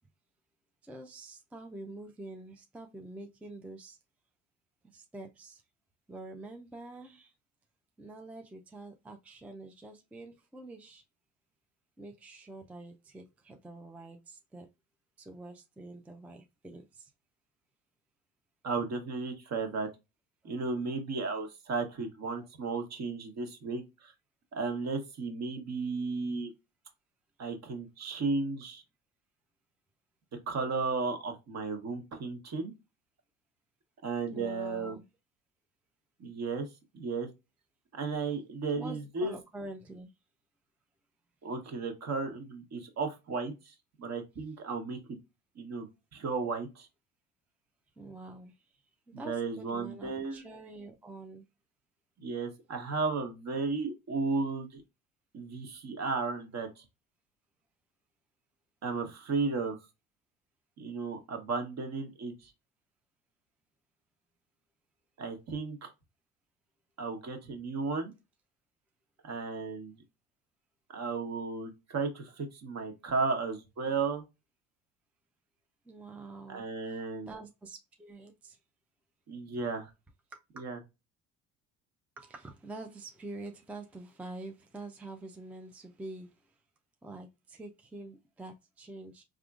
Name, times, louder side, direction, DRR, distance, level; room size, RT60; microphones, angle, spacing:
voice 1, 0.8-4.0 4.9-5.6 6.1-7.3 8.0-11.0 12.0-14.7 15.2-17.1 20.4-20.5 22.4-22.5 34.3-35.0 38.7-40.1 48.0-51.5 75.9-78.6 80.3-80.6 82.2-86.5 87.0-89.2, right 2 dB, 5° right, 0.4 m, -46 dB
voice 2, 18.6-19.9 20.4-24.1 24.5-26.5 27.4-28.8 30.5-32.7 34.0-35.0 36.2-36.7 36.9-37.3 37.9-39.3 41.4-45.0 45.6-45.9 46.1-46.9 49.1-50.5 52.2-54.8 55.3-56.8 58.8-59.8 60.8-62.5 65.2-65.9 67.0-68.1 69.2-70.0 70.9-74.2 76.5-77.3 79.3-79.9 80.6-80.8, right 4 dB, 45° right, 1.2 m, -34 dB
3.5 x 2.5 x 2.3 m
supercardioid pair, 80°, 36 cm